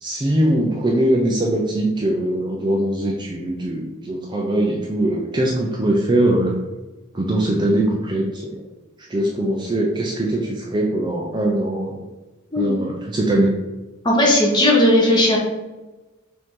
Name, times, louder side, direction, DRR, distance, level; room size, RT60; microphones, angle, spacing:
voice 1, 0.0-6.5 7.1-8.6 9.1-12.0 12.6-13.5, right 1 dB, 20° right, -1 dB, 0.4 m, -21 dB
voice 2, 14.0-15.4, left 1 dB, 20° left, -2 dB, 1.0 m, -16 dB
5.1 x 2.7 x 3.6 m, 1.1 s
head